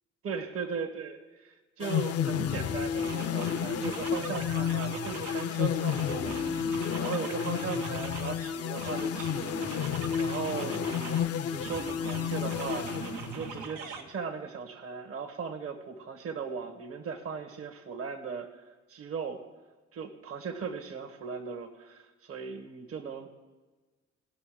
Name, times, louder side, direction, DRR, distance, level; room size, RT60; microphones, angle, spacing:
voice 1, 0.2-18.6 18.9-19.4 19.9-23.3, right 5 dB, 50° right, 4 dB, 1.3 m, -38 dB
sound 1, 1.8-13.7, left 8 dB, 55° left, 0.5 m, -31 dB
sound 2, 2.4-2.6 3.0-5.5 5.9-8.4 8.8-11.3 11.6-14.0, right 5 dB, 85° right, 1.4 m, -41 dB
17.0 x 5.9 x 4.9 m, 1.3 s
cardioid pair, 90°, 30 cm